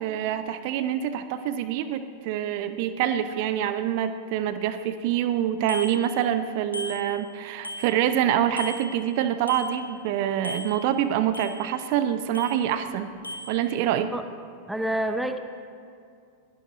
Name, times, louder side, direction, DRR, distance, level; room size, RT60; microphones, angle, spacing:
voice 1, 0.0-13.1 13.5-14.1, right 10 dB, 45° right, 11 dB, 0.7 m, -26 dB
Bicycle bell, 5.7-6.4 6.7-8.2 8.6-10.1 10.4-11.9 12.3-12.9 13.2-13.6, left 1 dB, 85° left, 1.5 m, -38 dB
voice 2, 14.7-15.4, right 1 dB, 5° right, 8 dB, 0.8 m, -27 dB
21.5 x 17.0 x 2.7 m, 2.3 s
figure-of-eight pair, 90°, 0 cm